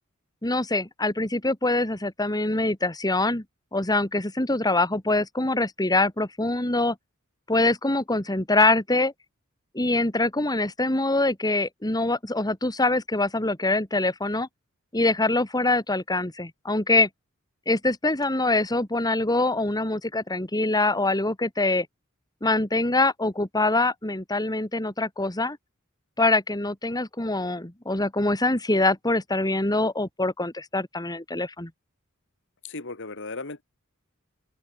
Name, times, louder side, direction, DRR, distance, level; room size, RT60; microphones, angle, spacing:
voice 1, 0.4-3.4 3.7-7.0 7.5-9.1 9.7-14.5 14.9-17.1 17.7-21.9 22.4-25.6 26.2-31.7, left 2 dB, 20° left, 2.5 m, -24 dB
voice 2, 32.6-33.6, left 3 dB, 65° left, 2.5 m, -36 dB
open air
head